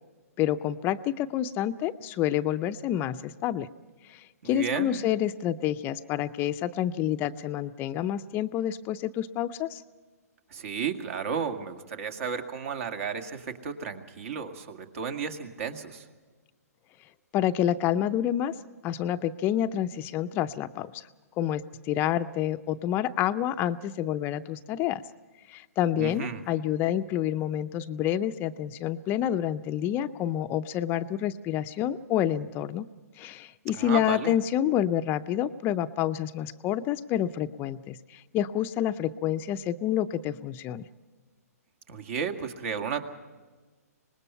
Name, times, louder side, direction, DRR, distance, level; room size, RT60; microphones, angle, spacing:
voice 1, 0.4-3.7 4.1-9.8 17.3-18.5 18.8-21.1 21.4-25.0 25.5-32.9 33.2-40.9, left 11 dB, 25° left, 10 dB, 0.5 m, -28 dB
voice 2, 4.4-5.0 10.5-16.1 26.0-26.4 33.7-34.3 41.9-43.0, right 6 dB, 60° right, 6 dB, 2.1 m, -33 dB
25.0 x 20.0 x 5.7 m, 1.3 s
hypercardioid pair, 135°, 9 cm